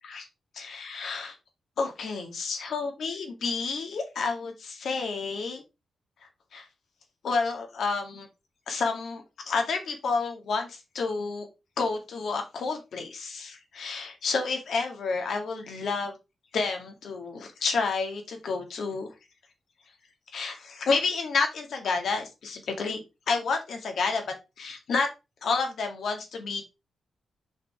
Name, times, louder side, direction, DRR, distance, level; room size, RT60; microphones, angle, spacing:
voice 1, 0.6-1.3 1.8-5.6 6.5-6.7 7.2-8.3 8.7-11.5 11.8-16.1 16.5-19.1 20.3-24.2 24.6-25.1 25.4-26.6, left 4 dB, 65° left, 4 dB, 2.0 m, -30 dB
5.7 x 5.6 x 4.5 m, 0.26 s
wide cardioid pair, 160°, 0 cm